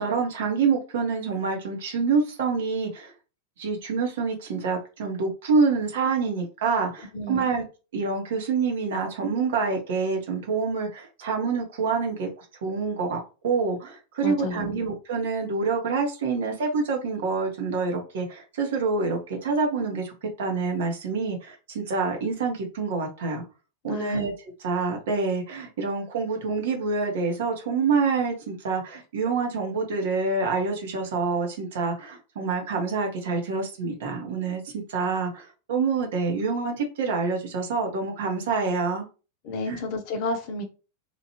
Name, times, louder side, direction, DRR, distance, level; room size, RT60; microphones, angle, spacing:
voice 1, 0.0-3.1 3.6-7.6 7.9-23.4 23.8-24.3 24.6-39.1 39.7-39.8, right 4 dB, 55° right, 0.9 m, -27 dB
voice 2, 7.1-7.5 14.2-14.8 23.9-24.3 39.4-40.6, left 2 dB, 45° left, 0.7 m, -30 dB
2.9 x 2.5 x 2.8 m
figure-of-eight pair, 90°, 0 cm